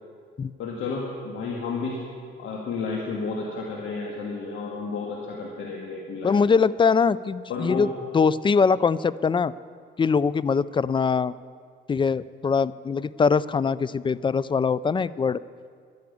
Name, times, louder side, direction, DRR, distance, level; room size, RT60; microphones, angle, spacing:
voice 1, 0.6-2.0 2.4-6.6 7.5-7.9, left 4 dB, 80° left, -1 dB, 1.8 m, -31 dB
voice 2, 6.2-9.5 10.0-11.3 11.9-15.4, left 5 dB, 25° left, 19 dB, 0.4 m, -22 dB
11.5 x 10.5 x 8.5 m, 2.1 s
cardioid pair, 90°, 20 cm